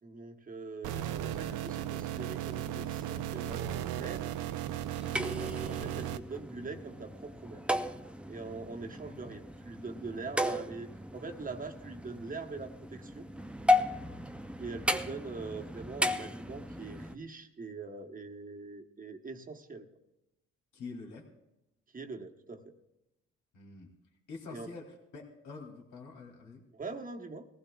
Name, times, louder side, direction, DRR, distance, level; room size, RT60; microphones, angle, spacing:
voice 1, 0.0-4.4 5.4-7.6 8.3-13.3 14.6-19.8 21.9-22.7 24.5-24.7 26.7-27.5, right 3 dB, 25° right, 4 dB, 1.1 m, -43 dB
sound 1, 0.8-6.2, right 11 dB, 85° right, 0.6 m, -36 dB
sound 2, 4.9-17.2, left 1 dB, 5° right, 0.5 m, -35 dB
voice 2, 20.7-21.3 23.5-23.9 24.3-26.6, left 4 dB, 75° left, 1 dB, 2.5 m, -46 dB
20.5 x 15.0 x 2.3 m, 0.90 s
cardioid pair, 90°, 30 cm